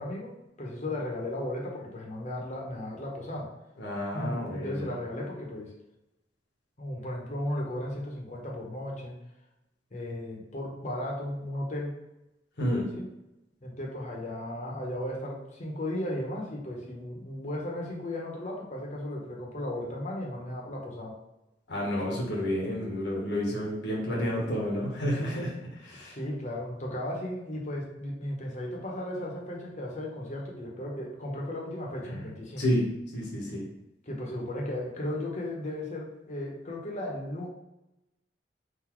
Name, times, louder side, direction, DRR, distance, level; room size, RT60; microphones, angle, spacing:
voice 1, 0.0-3.5 4.1-5.7 6.8-9.2 9.9-11.9 12.9-13.0 13.6-21.2 25.9-32.6 34.1-37.5, left 1 dB, 40° left, -1 dB, 1.0 m, -35 dB
voice 2, 3.8-4.9 12.6-12.9 21.7-25.5 25.8-26.2 32.1-32.3 32.6-32.9 33.1-33.7, equal, 70° left, -3 dB, 1.2 m, -30 dB
4.0 x 2.8 x 4.5 m, 0.91 s
head